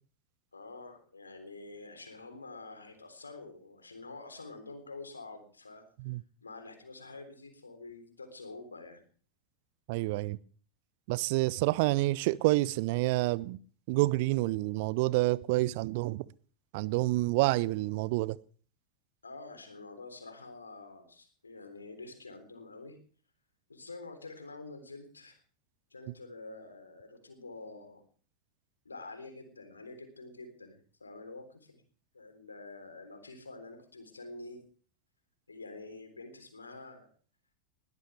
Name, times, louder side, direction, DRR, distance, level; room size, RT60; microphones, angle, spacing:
voice 1, 0.5-5.9 6.4-9.0 19.2-23.0 23.7-25.4 25.9-28.0 28.9-31.8 32.1-34.6 35.5-37.1, left 3 dB, 75° left, 7 dB, 3.7 m, -47 dB
voice 2, 9.9-10.4 11.1-13.6 13.9-16.2 16.7-18.4, right 20 dB, 50° right, 22 dB, 0.6 m, -28 dB
20.5 x 14.5 x 3.4 m, 0.43 s
figure-of-eight pair, 90°, 0 cm